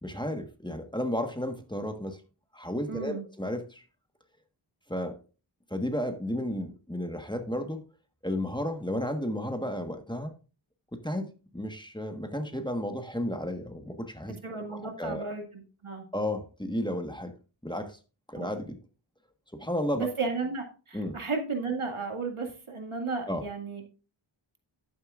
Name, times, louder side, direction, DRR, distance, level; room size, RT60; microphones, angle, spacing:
voice 1, 0.0-2.2 2.5-3.8 4.9-5.2 5.7-7.8 8.2-10.3 10.9-11.3 11.5-14.4 14.7-15.3 16.1-17.3 17.6-18.0 18.3-18.8 19.5-20.1 20.9-21.2 23.3-23.4, left 1 dB, 10° left, 6 dB, 1.4 m, -33 dB
voice 2, 2.9-3.2 14.4-16.0 18.3-18.5 20.0-23.8, right 4 dB, 85° right, 3 dB, 2.2 m, -34 dB
11.0 x 9.4 x 2.5 m, 0.34 s
wide cardioid pair, 45°, 49 cm